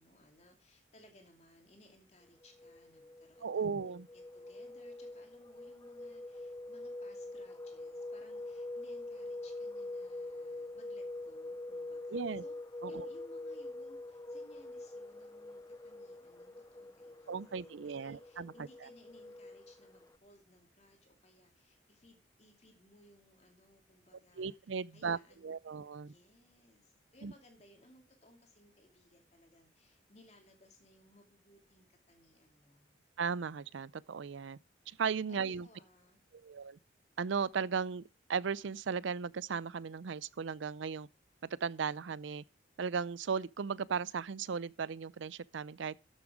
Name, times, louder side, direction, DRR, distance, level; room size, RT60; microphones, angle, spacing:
voice 1, 0.0-3.7 4.1-12.5 12.9-33.0 35.3-36.2, left 1 dB, 35° left, 2.5 m, -63 dB
sound 1, 2.4-20.2, left 2 dB, 20° left, 0.6 m, -45 dB
voice 2, 3.4-4.1 12.1-12.4 12.8-13.1 17.3-18.5 24.4-26.1 27.2-27.3 33.2-34.6 34.9-35.7 36.4-36.8 37.2-38.0 38.3-41.1 41.6-42.4 42.8-46.0, right 6 dB, 75° right, 0.5 m, -36 dB
13.5 x 7.3 x 4.9 m
head